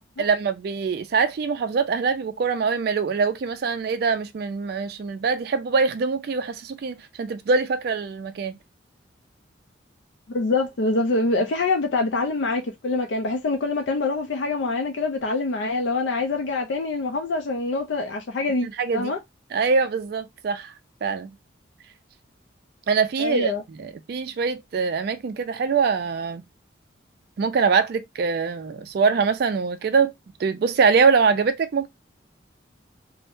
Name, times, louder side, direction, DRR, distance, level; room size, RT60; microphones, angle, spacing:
voice 1, 0.2-8.5 18.6-19.1 19.5-20.7 21.0-21.3 22.9-23.5 23.8-26.4 27.4-30.1 30.4-31.9, right 5 dB, 55° right, 0.3 m, -23 dB
voice 2, 10.3-18.7 18.9-19.2 23.2-23.6, left 3 dB, 65° left, 0.4 m, -25 dB
2.6 x 2.0 x 3.4 m
head